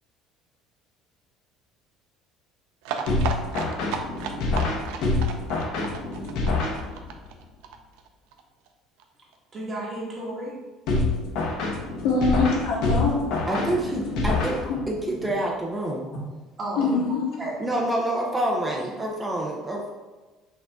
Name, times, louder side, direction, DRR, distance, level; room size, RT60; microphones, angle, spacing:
sound 1, 2.8-8.4 8.7-8.8 9.0-9.1 9.3-9.4, right 7 dB, 85° right, 0.5 m, -34 dB
sound 2, 3.1-7.3 10.9-15.1, left 3 dB, 70° left, 0.9 m, -27 dB
voice 1, 9.5-10.6 12.3-12.4 13.5-13.6 16.6-17.0 17.4-17.8 18.4-18.5, right 1 dB, 25° right, -5 dB, 1.5 m, -33 dB
voice 2, 12.0-13.3 14.0-14.2 14.7-14.8 16.8-17.3, left 3 dB, 85° left, -4 dB, 1.5 m, -24 dB
voice 3, 13.5-14.6 14.9-16.1 17.6-19.9, right 1 dB, 10° right, -1 dB, 0.6 m, -27 dB
5.6 x 2.6 x 3.5 m, 1.2 s
cardioid pair, 145°, 0 cm